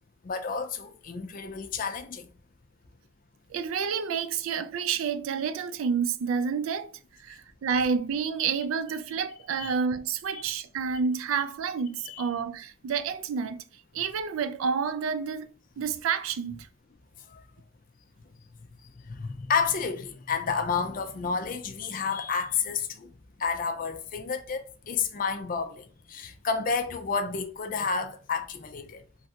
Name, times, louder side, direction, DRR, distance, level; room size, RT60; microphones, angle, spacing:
voice 1, 0.2-2.3 9.5-9.8 10.3-10.4 12.0-12.3 17.3-17.4 19.1-23.1 23.4-29.0, left 5 dB, 40° left, 0.4 m, -30 dB
voice 2, 3.5-6.9 7.2-13.6 13.9-15.5 15.8-16.7, right 6 dB, 75° right, 0.3 m, -29 dB
3.1 x 2.5 x 2.7 m
head